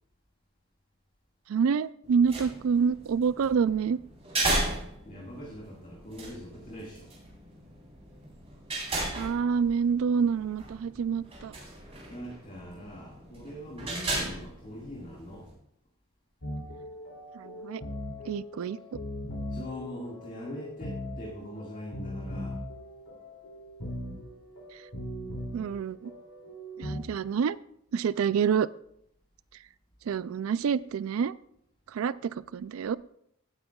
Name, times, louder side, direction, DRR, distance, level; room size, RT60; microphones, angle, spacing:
voice 1, 1.5-4.0 9.1-11.6 17.3-17.8 18.2-19.0 24.7-24.8 25.5-26.1 26.8-27.6 27.9-28.7 30.1-31.3 31.9-33.0, right 6 dB, 70° right, 18 dB, 0.3 m, -27 dB
Heavy steel door opening and closing, 2.0-15.5, right 2 dB, 30° right, 4.1 m, -36 dB
voice 2, 5.0-7.1 12.1-15.5 19.5-22.6, equal, 35° left, -3 dB, 1.9 m, -42 dB
sound 1, 16.4-27.0, left 1 dB, 80° left, 2.7 m, -39 dB
17.5 x 9.0 x 2.3 m, 0.73 s
head